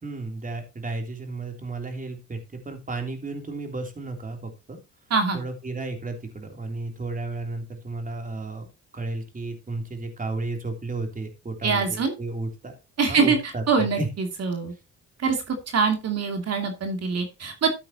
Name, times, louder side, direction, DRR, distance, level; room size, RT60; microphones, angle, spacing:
voice 1, 0.0-4.8 5.3-8.7 8.9-12.8 13.1-14.1, right 3 dB, 25° right, 4 dB, 3.3 m, -33 dB
voice 2, 5.1-5.4 11.6-12.1 13.0-13.4 13.7-14.7 15.2-17.7, right 5 dB, 55° right, 5 dB, 2.8 m, -24 dB
13.5 x 8.4 x 2.9 m, 0.25 s
cardioid pair, 90°, 30 cm